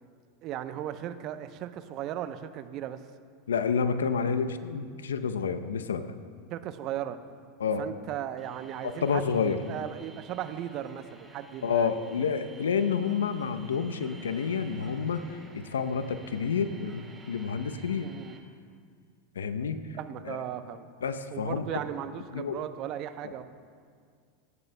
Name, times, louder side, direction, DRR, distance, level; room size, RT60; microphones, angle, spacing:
voice 1, 0.4-3.1 6.5-7.2 7.8-11.9 18.0-18.4 19.9-20.9 21.3-23.4, right 11 dB, 45° right, 10 dB, 0.7 m, -37 dB
voice 2, 3.5-6.1 7.6-7.8 8.8-9.6 11.6-18.1 19.4-19.8 20.3-20.4 21.0-21.8 22.3-22.6 23.2-23.4, left 6 dB, 80° left, 11 dB, 0.7 m, -29 dB
sound 1, 8.4-18.4, right 3 dB, 10° right, 2.5 m, -53 dB
23.5 x 10.5 x 2.2 m, 2.1 s
hypercardioid pair, 90°, 0 cm